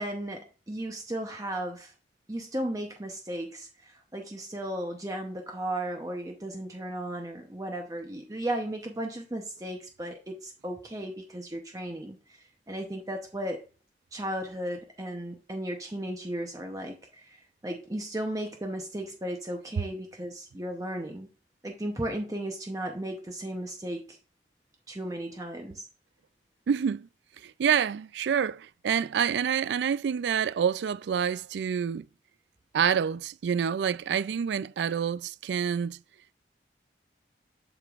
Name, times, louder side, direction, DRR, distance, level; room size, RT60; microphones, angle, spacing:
voice 1, 0.0-1.9 2.3-13.6 14.1-21.3 21.6-24.2 24.9-25.8, right 1 dB, 20° right, 0.7 m, -35 dB
voice 2, 26.7-27.1 27.4-32.0 32.7-36.0, right 7 dB, 75° right, 0.3 m, -27 dB
7.9 x 6.9 x 2.4 m
head